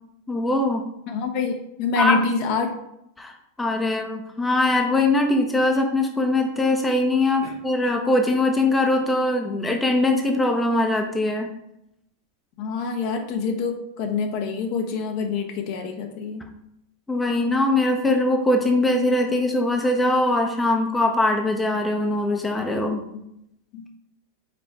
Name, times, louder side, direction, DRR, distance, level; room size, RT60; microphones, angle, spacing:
voice 1, 0.3-0.8 2.0-2.2 3.2-11.5 17.1-23.0, left 2 dB, 10° left, 2 dB, 0.9 m, -22 dB
voice 2, 1.1-2.7 7.4-7.5 12.6-16.5 23.1-23.2 23.7-23.9, left 5 dB, 45° left, 4 dB, 0.9 m, -26 dB
5.1 x 4.5 x 4.7 m, 0.80 s
figure-of-eight pair, 90°, 0 cm